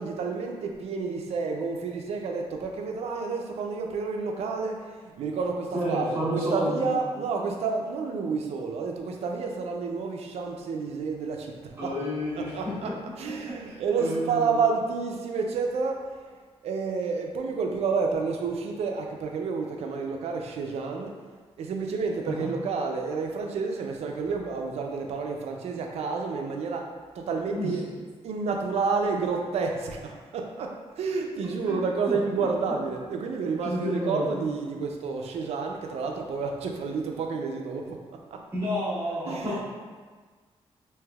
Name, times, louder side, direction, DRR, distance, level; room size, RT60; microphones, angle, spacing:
voice 1, 0.0-12.0 12.3-21.3 21.6-38.0 38.3-38.5 39.3-39.6, right 4 dB, 80° right, 2 dB, 0.4 m, -30 dB
voice 2, 5.7-6.9 11.8-12.5 13.6-14.5 22.2-22.5 27.5-27.7 31.7-31.8 32.1-32.5 33.6-34.4 38.5-39.6, equal, 20° right, -12 dB, 1.0 m, -30 dB
3.3 x 2.8 x 2.3 m, 1.5 s
wide cardioid pair, 160°, 11 cm